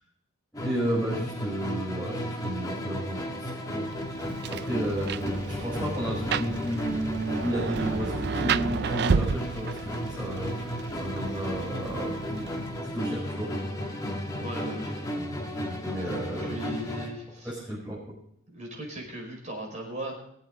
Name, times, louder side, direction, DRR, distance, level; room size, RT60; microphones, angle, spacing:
Musical instrument, 0.5-17.2, equal, 15° left, 1.6 m, -34 dB
voice 1, 0.6-4.0 4.5-10.6 11.0-12.5 12.8-13.5 15.8-16.5 17.4-18.0, right 1 dB, 5° right, -10 dB, 5.6 m, -32 dB
Rain, 3.9-13.0, right 6 dB, 50° right, 0.4 m, -32 dB
voice 2, 14.4-14.9 16.4-17.5 18.5-20.2, right 1 dB, 35° right, -1 dB, 5.2 m, -38 dB
22.5 x 8.1 x 3.9 m, 0.72 s
head